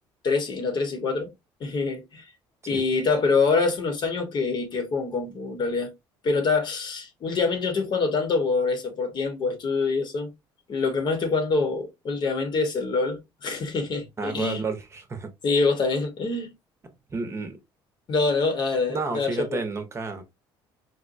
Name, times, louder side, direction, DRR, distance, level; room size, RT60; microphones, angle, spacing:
voice 1, 0.2-1.3 1.6-2.2 2.7-5.9 6.2-10.3 10.7-14.6 15.4-16.5 18.1-19.6, left 4 dB, 50° left, 1.0 m, -25 dB
voice 2, 14.2-15.3 17.1-17.6 18.9-20.2, right 4 dB, 30° right, 0.8 m, -31 dB
4.1 x 2.2 x 2.5 m
cardioid pair, 90°, 10 cm